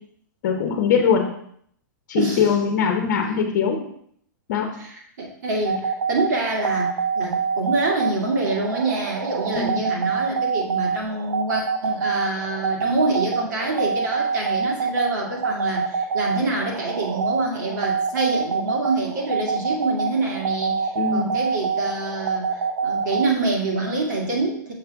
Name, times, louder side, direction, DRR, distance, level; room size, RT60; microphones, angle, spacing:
voice 1, 0.4-1.3 2.1-3.8 4.5-4.7 9.5-9.9 20.9-21.4, left 6 dB, 40° left, 2 dB, 0.9 m, -21 dB
voice 2, 2.1-2.5 4.9-24.7, right 2 dB, 65° right, -1 dB, 2.2 m, -26 dB
sound 1, 5.7-23.3, right 5 dB, 85° right, 0.5 m, -26 dB
6.4 x 5.4 x 3.5 m, 0.65 s
hypercardioid pair, 170°, 10 cm